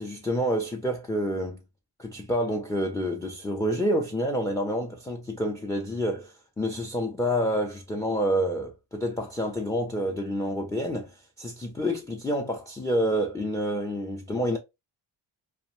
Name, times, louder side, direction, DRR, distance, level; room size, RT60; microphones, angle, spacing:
voice 1, 0.0-1.6 2.0-14.6, equal, 10° left, 0.3 m, -28 dB
2.4 x 2.1 x 2.9 m
cardioid pair, 80°, 47 cm